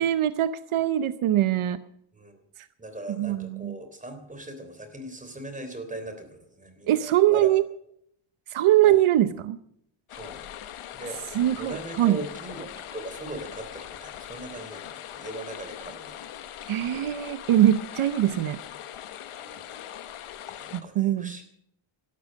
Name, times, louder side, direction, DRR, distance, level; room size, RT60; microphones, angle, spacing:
voice 1, 0.0-1.8 3.2-3.7 6.9-7.6 8.5-9.6 11.3-12.2 16.7-18.6 20.7-21.4, right 12 dB, 75° right, 13 dB, 0.8 m, -22 dB
voice 2, 2.8-7.5 8.8-9.0 10.1-10.4 10.9-11.2 11.5-16.3 19.4-19.6 20.6-21.4, right 2 dB, 15° right, 7 dB, 3.4 m, -39 dB
sound 1, 10.1-20.8, left 11 dB, 80° left, 1.3 m, -41 dB
17.0 x 12.5 x 6.4 m, 0.73 s
wide cardioid pair, 130°, 49 cm